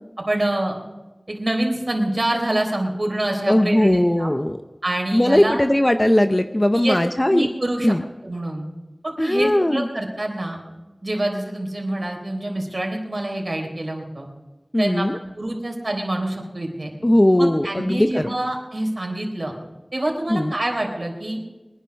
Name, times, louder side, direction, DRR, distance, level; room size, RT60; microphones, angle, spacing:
voice 1, 0.3-0.7 1.3-4.3 4.8-5.6 6.7-7.0 7.3-7.9 8.2-8.6 9.0-10.6 11.0-14.3 14.8-15.1 15.4-16.9 17.4-19.5 19.9-21.4, right 1 dB, 50° right, 0 dB, 3.7 m, -26 dB
voice 2, 3.5-4.6 5.1-7.5 7.8-8.0 9.2-9.9 14.7-15.2 17.0-18.3 20.3-20.5, left 1 dB, 25° left, 7 dB, 0.7 m, -18 dB
22.0 x 10.5 x 5.3 m, 1.1 s
wide cardioid pair, 50°, 0 cm